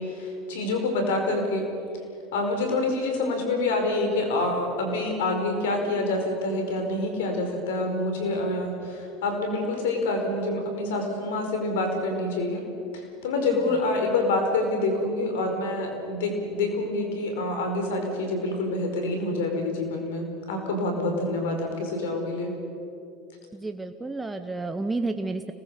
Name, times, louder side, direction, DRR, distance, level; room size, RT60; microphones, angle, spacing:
voice 1, 0.0-1.7 2.3-12.6 12.9-22.5, left 2 dB, 80° left, 4 dB, 4.9 m, -27 dB
voice 2, 23.5-25.5, right 3 dB, 15° right, 7 dB, 1.1 m, -31 dB
26.0 x 20.0 x 6.9 m, 2.6 s
hypercardioid pair, 90°, 0 cm